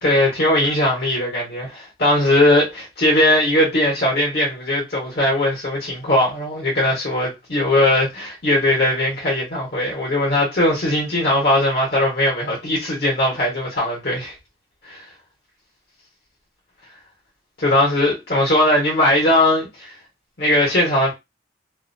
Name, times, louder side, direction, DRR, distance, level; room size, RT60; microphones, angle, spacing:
voice 1, 0.0-14.3 14.8-15.0 17.6-19.9 20.4-21.1, left 1 dB, 60° left, 1.0 m, -19 dB
2.5 x 2.1 x 2.6 m
head